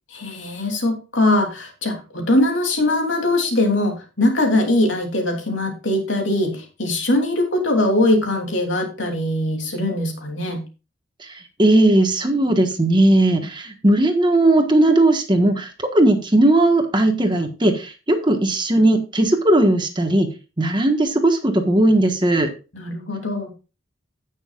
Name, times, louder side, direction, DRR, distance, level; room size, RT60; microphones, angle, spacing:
voice 1, 0.1-10.6 22.7-23.5, left 1 dB, 75° left, 2 dB, 3.1 m, -21 dB
voice 2, 11.6-20.3 20.6-22.5, right 1 dB, 25° right, 5 dB, 1.4 m, -17 dB
17.0 x 6.3 x 2.4 m, 0.31 s
head